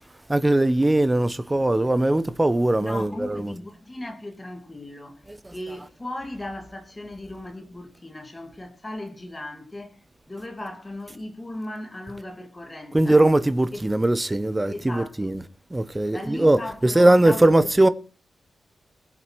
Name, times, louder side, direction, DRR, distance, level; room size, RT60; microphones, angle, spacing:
voice 1, 0.3-3.5 12.9-15.4 15.7-17.9, right 1 dB, 10° right, 0.8 m, -20 dB
voice 2, 2.8-5.2 5.5-10.0 10.3-13.2 13.7-13.8 14.7-15.4 16.1-17.7, left 1 dB, 15° left, 2.3 m, -37 dB
21.0 x 7.9 x 4.5 m
wide cardioid pair, 170°, 0 cm